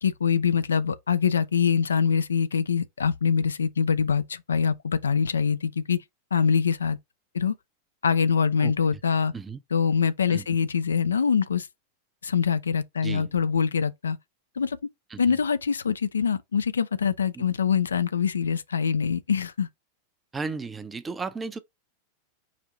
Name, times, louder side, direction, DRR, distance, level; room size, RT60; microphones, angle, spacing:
voice 1, 0.0-6.0 6.3-7.0 7.3-7.5 8.0-9.3 9.7-11.7 12.2-14.2 14.6-14.8 15.2-19.7, left 6 dB, 70° left, 0.4 m, -24 dB
voice 2, 8.6-9.0 9.3-9.6 10.3-10.5 13.0-13.3 15.1-15.4 17.3-17.4 20.3-21.6, right 4 dB, 15° right, 0.5 m, -35 dB
4.9 x 2.6 x 3.7 m
figure-of-eight pair, 90°, 0 cm